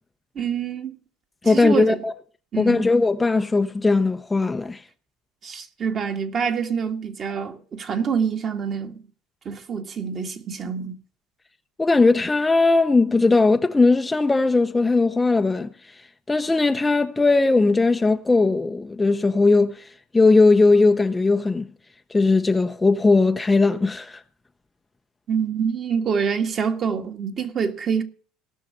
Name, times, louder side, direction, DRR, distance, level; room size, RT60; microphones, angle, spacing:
voice 1, 0.4-1.0 1.4-2.0 2.5-2.9 5.4-9.0 9.5-11.0 25.3-28.0, right 6 dB, 35° right, 1.8 m, -26 dB
voice 2, 1.4-2.1 2.6-4.8 11.8-21.7 22.1-24.2, left 3 dB, 10° left, 0.6 m, -19 dB
17.5 x 6.3 x 6.6 m
supercardioid pair, 115°, 0 cm